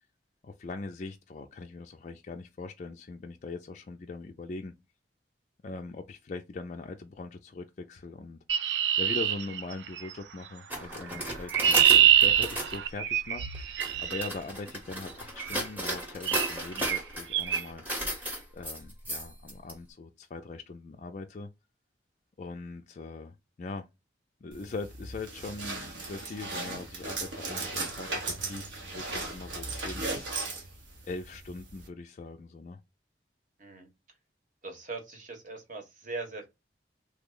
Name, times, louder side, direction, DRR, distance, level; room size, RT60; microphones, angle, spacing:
voice 1, 0.4-4.7 5.6-8.4 9.0-18.3 18.5-21.5 22.4-23.8 24.4-30.6 31.0-32.8, left 3 dB, 40° left, 0.3 m, -41 dB
Chirp tweet, 8.5-10.1 11.1-14.3 15.4-15.7 16.3-16.5 16.8-17.0 17.3-17.6, right 10 dB, 70° right, 0.3 m, -24 dB
sound 1, 10.7-12.8 13.5-19.7, equal, 10° right, 0.8 m, -35 dB
sound 2, 24.5-31.9, right 3 dB, 85° right, 0.9 m, -37 dB
voice 2, 34.6-36.5, right 3 dB, 45° right, 1.0 m, -40 dB
3.2 x 2.0 x 3.6 m
head